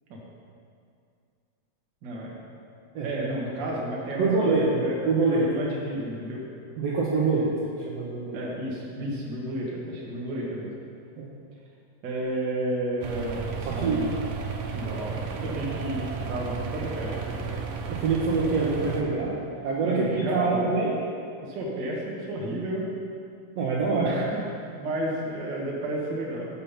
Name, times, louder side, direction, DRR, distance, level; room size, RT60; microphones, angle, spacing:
voice 1, 2.0-2.3 3.0-5.0 5.3-6.5 8.3-10.7 12.0-14.1 14.7-17.6 19.8-20.7 21.4-22.9 23.9-24.5 24.8-26.5, right 1 dB, 45° right, -3 dB, 1.6 m, -32 dB
voice 2, 4.2-5.4 6.8-7.5 7.9-8.5 11.2-11.3 13.6-14.0 17.9-19.3 19.6-20.9 23.6-24.1, right 4 dB, 65° right, -6 dB, 1.8 m, -25 dB
sound 1, 13.0-19.0, right 5 dB, 85° right, 2.4 m, -33 dB
7.6 x 6.9 x 5.7 m, 2.4 s
omnidirectional pair, 3.7 m